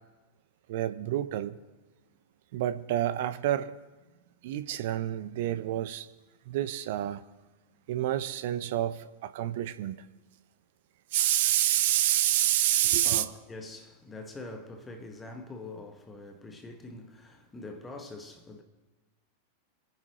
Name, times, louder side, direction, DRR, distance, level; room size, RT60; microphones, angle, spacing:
voice 1, 0.7-1.6 2.5-3.8 4.4-6.1 6.5-7.2 7.9-10.1 11.1-13.2, right 13 dB, 50° right, 0.7 m, -28 dB
voice 2, 13.0-18.6, left 2 dB, 15° left, 1.4 m, -44 dB
28.0 x 10.0 x 3.0 m
figure-of-eight pair, 90°, 0 cm